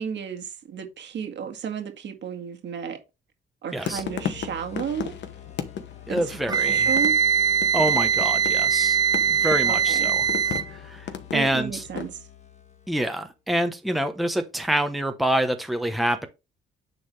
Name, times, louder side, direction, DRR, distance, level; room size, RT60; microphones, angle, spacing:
voice 1, 0.0-3.0 3.6-5.2 6.1-7.2 9.6-10.1 11.3-12.2, right 7 dB, 65° right, 1.9 m, -33 dB
sound 1, 3.7-12.1, left 8 dB, 65° left, 1.2 m, -35 dB
sound 2, 3.7-13.3, left 9 dB, 35° left, 1.3 m, -45 dB
voice 2, 3.7-4.0 6.1-6.9 7.7-9.0 9.3-10.2 10.7-11.8 12.9-16.3, right 1 dB, ahead, 1.0 m, -26 dB
Wind instrument woodwind instrument, 6.5-10.7, right 7 dB, 20° right, 0.5 m, -21 dB
9.8 x 3.9 x 3.4 m
cardioid pair, 90°, 20 cm